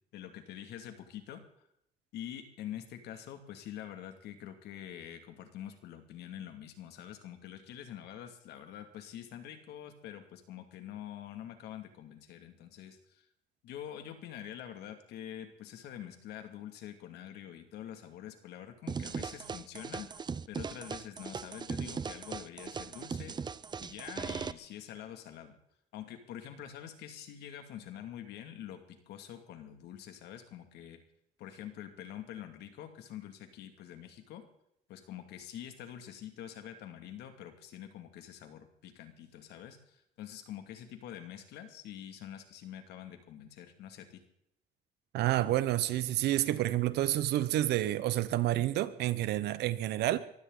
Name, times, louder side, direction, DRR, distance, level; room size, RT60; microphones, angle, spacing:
voice 1, 0.1-1.7 2.1-13.3 13.6-23.4 23.8-25.6 25.9-31.0 31.4-34.4 34.9-44.2, left 10 dB, 80° left, 2.4 m, -46 dB
sound 1, 18.9-24.5, right 5 dB, 25° right, 0.6 m, -39 dB
voice 2, 45.1-50.2, right 14 dB, 80° right, 1.1 m, -29 dB
23.0 x 15.5 x 4.0 m
cardioid pair, 110°, 17 cm